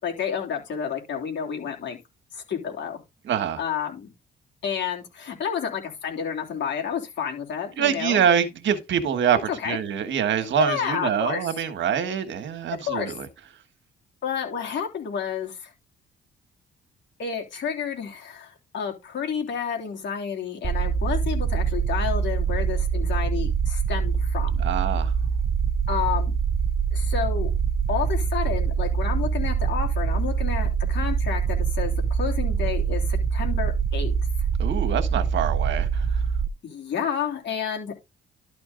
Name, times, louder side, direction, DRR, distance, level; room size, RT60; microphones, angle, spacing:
voice 1, 0.0-2.0 2.3-3.0 3.6-4.1 4.6-8.3 9.5-9.8 10.6-11.5 12.8-13.2 14.2-15.7 17.2-24.5 25.9-26.3 26.9-27.5 27.9-34.1 36.6-38.0, left 7 dB, 65° left, 3.2 m, -30 dB
voice 2, 3.3-3.6 7.8-13.3 24.6-25.1 34.6-36.0, right 8 dB, 70° right, 1.5 m, -25 dB
sound 1, 20.6-36.5, right 6 dB, 30° right, 0.7 m, -24 dB
12.0 x 4.4 x 3.8 m
cardioid pair, 90°, 20 cm